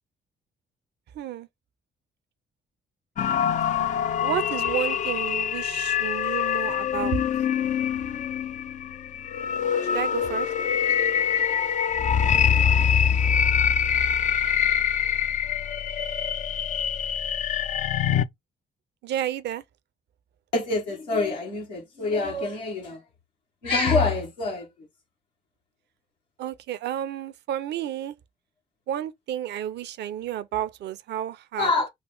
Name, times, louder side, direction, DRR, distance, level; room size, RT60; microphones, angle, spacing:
voice 1, 1.1-1.5 4.2-7.2 9.9-10.5 19.0-19.6 26.4-28.2 28.9-31.7, right 11 dB, 55° right, 0.6 m, -31 dB
sound 1, 3.2-18.3, left 8 dB, 35° left, 0.5 m, -24 dB
voice 2, 20.5-23.0 23.6-24.7 31.6-31.9, left 3 dB, 80° left, 1.7 m, -25 dB
6.4 x 2.4 x 3.4 m
figure-of-eight pair, 40°, 21 cm